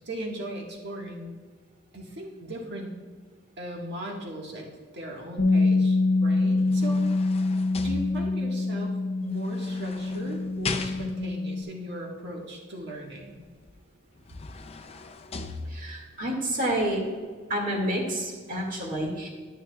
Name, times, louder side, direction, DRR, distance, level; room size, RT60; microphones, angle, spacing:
voice 1, 0.0-1.4 1.9-2.9 3.6-7.0 7.8-13.5, right 1 dB, 60° right, -1 dB, 1.7 m, -38 dB
Bass guitar, 5.4-11.6, left 3 dB, 75° left, 1.1 m, -25 dB
sound 1, 6.4-8.6 9.4-11.4 13.7-13.8 14.2-16.2 16.7-16.9, left 3 dB, 30° left, 0.5 m, -38 dB
voice 2, 15.7-17.0 17.5-19.3, right 1 dB, 45° right, -1 dB, 2.1 m, -29 dB
11.0 x 10.0 x 2.4 m, 1.5 s
head